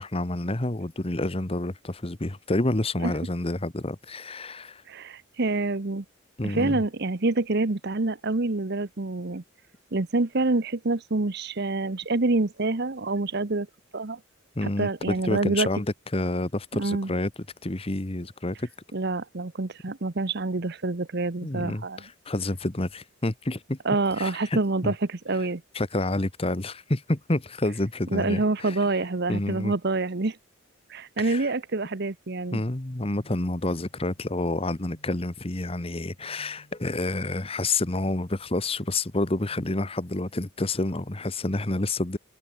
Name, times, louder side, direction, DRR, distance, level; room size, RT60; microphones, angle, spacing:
voice 1, 0.0-4.8 6.4-6.8 14.5-17.3 17.6-18.7 21.4-23.8 24.2-24.9 25.7-28.8 29.3-29.7 31.2-31.5 32.5-42.2, left 2 dB, 30° left, 1.2 m, -29 dB
voice 2, 4.9-6.0 6.4-9.4 9.9-13.7 13.9-14.2 14.6-15.7 16.8-17.1 18.9-22.0 23.8-25.6 28.1-30.4 30.9-32.6, right 3 dB, 55° right, 1.0 m, -27 dB
sound 1, 34.7-39.7, equal, 65° left, 7.1 m, -58 dB
open air
head